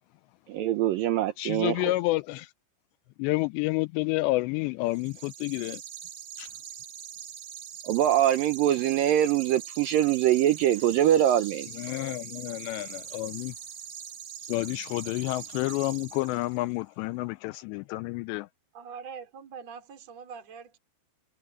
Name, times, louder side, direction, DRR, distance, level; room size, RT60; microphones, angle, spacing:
voice 1, 0.5-1.9 7.8-11.7, right 11 dB, 80° right, 2.0 m, -23 dB
voice 2, 1.4-2.5 3.2-5.8 6.4-6.5 11.7-13.5 14.5-18.5, left 20 dB, 85° left, 2.7 m, -30 dB
sound 1, 4.9-16.7, right 9 dB, 65° right, 2.5 m, -42 dB
sound 2, 9.9-14.2, left 5 dB, 60° left, 7.4 m, -54 dB
voice 3, 18.7-20.8, right 6 dB, 40° right, 4.5 m, -43 dB
omnidirectional pair, 5.1 m